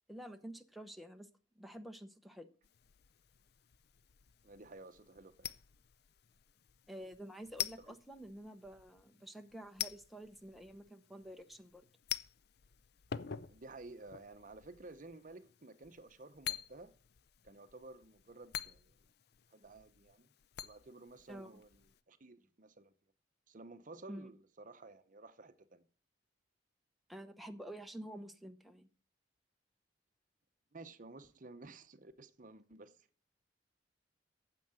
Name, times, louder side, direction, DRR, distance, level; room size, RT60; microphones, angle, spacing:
voice 1, 0.1-1.3 1.5-2.5 6.9-11.9 21.3-21.6 24.1-24.3 27.1-28.9, right 1 dB, ahead, 0.8 m, -49 dB
sound 1, 2.6-22.0, left 10 dB, 60° left, 0.5 m, -48 dB
voice 2, 4.4-5.5 7.8-8.0 13.5-16.9 17.4-19.0 19.5-20.3 20.6-22.9 23.5-25.8 30.7-33.1, right 2 dB, 45° right, 0.8 m, -53 dB
9.2 x 7.6 x 8.0 m
head